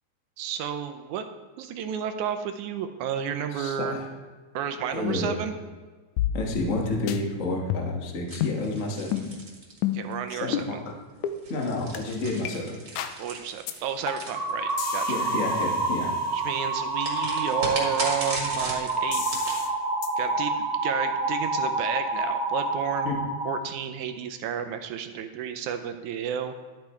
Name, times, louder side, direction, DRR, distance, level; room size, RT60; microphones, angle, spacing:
voice 1, 0.4-1.3 1.6-4.0 4.5-5.6 9.9-10.8 13.2-15.2 16.3-19.4 20.2-20.5 20.8-23.1 23.5-26.5, right 8 dB, 75° right, 8 dB, 2.0 m, -31 dB
voice 2, 3.5-4.1 4.9-5.4 6.3-9.2 10.3-10.9 11.5-12.7 15.1-16.1 23.0-23.2, left 2 dB, 50° left, 1 dB, 0.8 m, -30 dB
sound 1, 6.2-6.8 7.1-7.2 7.7-8.1 8.4-8.6 9.1-9.3 9.8-10.1 10.5-10.7 11.2-11.4 11.9-12.0 12.4-12.5 13.0-13.2 13.7-13.8 14.1-14.4 14.8-16.6 19.1-19.7 20.0-20.1, left 10 dB, 80° left, 1.9 m, -31 dB
sound 2, 8.3-10.3 11.3-15.0 17.0-19.6, right 2 dB, 35° right, 2.1 m, -37 dB
sound 3, 14.3-23.6, right 2 dB, 20° right, 1.9 m, -28 dB
12.0 x 8.3 x 4.3 m, 1.4 s
omnidirectional pair, 3.7 m